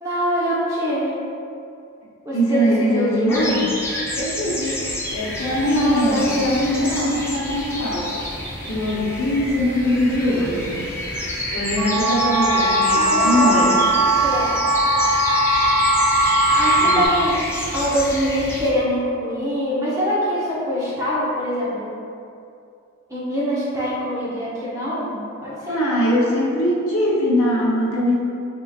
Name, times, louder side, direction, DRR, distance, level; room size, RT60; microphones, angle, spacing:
voice 1, 0.0-1.2 2.2-3.5 5.6-7.1 12.9-13.7 14.0-14.5 16.6-17.4 17.7-21.9 23.1-26.0, equal, 15° right, -8 dB, 0.8 m, -24 dB
voice 2, 2.3-3.7 4.2-4.8 5.1-8.1 8.6-10.9 11.5-13.8 16.8-17.1 25.7-28.1, equal, 75° left, -4 dB, 0.8 m, -21 dB
sound 1, 3.3-18.7, left 1 dB, 10° left, 0.5 m, -29 dB
sound 2, 11.8-17.1, right 1 dB, 70° right, 1.0 m, -19 dB
4.5 x 3.7 x 2.4 m, 2.5 s
head